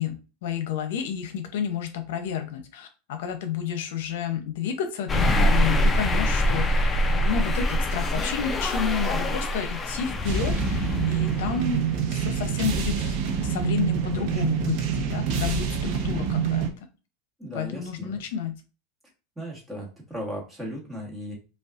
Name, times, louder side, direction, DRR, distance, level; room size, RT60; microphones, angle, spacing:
voice 1, 0.0-13.2 13.4-16.8 17.5-18.6, left 7 dB, 75° left, 7 dB, 0.6 m, -31 dB
sound 1, 5.1-12.4, left 1 dB, 15° left, 0.4 m, -24 dB
sound 2, 10.2-16.7, right 7 dB, 45° right, 0.8 m, -26 dB
voice 2, 17.4-18.2 19.4-21.4, equal, 5° right, -3 dB, 1.3 m, -36 dB
5.1 x 2.3 x 2.5 m, 0.33 s
supercardioid pair, 160°, 0 cm